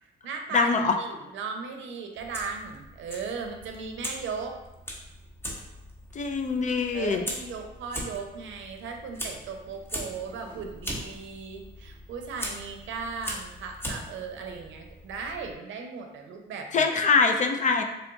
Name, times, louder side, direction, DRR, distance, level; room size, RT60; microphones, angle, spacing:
voice 1, 0.0-4.6 6.9-16.9, right 5 dB, 75° right, 3 dB, 0.6 m, -37 dB
voice 2, 0.5-0.9 6.1-7.2 16.7-17.8, left 4 dB, 40° left, 5 dB, 0.4 m, -23 dB
Fire, 2.1-15.5, equal, 10° left, 0.8 m, -40 dB
3.4 x 2.3 x 3.9 m, 0.97 s
cardioid pair, 90°, 20 cm